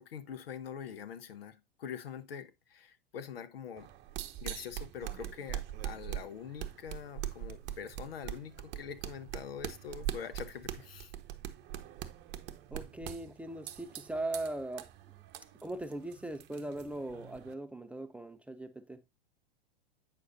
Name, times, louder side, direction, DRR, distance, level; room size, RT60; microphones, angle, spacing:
voice 1, 0.0-3.9 4.4-11.1, left 7 dB, 75° left, 1.0 m, -44 dB
sound 1, 3.8-17.5, right 11 dB, 35° right, 0.9 m, -43 dB
voice 2, 12.7-14.9 15.6-19.0, right 2 dB, 5° right, 0.4 m, -39 dB
8.6 x 6.4 x 2.6 m
hypercardioid pair, 100°, 30 cm